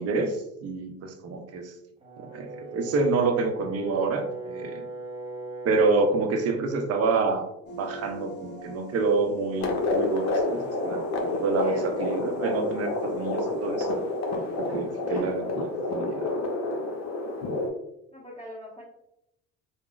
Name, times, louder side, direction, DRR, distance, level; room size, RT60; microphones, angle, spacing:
voice 1, 0.0-1.7 2.2-4.8 5.6-14.0 14.6-16.3, right 3 dB, 50° right, 6 dB, 0.6 m, -28 dB
Brass instrument, 2.0-6.2, right 2 dB, 20° right, 0.9 m, -38 dB
sound 1, 7.7-16.0, left 1 dB, 35° left, 1.0 m, -43 dB
sound 2, 9.6-17.7, left 2 dB, 55° left, 0.7 m, -29 dB
voice 2, 11.5-11.9 15.0-15.3 18.1-18.8, left 1 dB, 15° left, -9 dB, 1.2 m, -42 dB
3.6 x 2.0 x 2.4 m, 0.81 s
supercardioid pair, 80°, 32 cm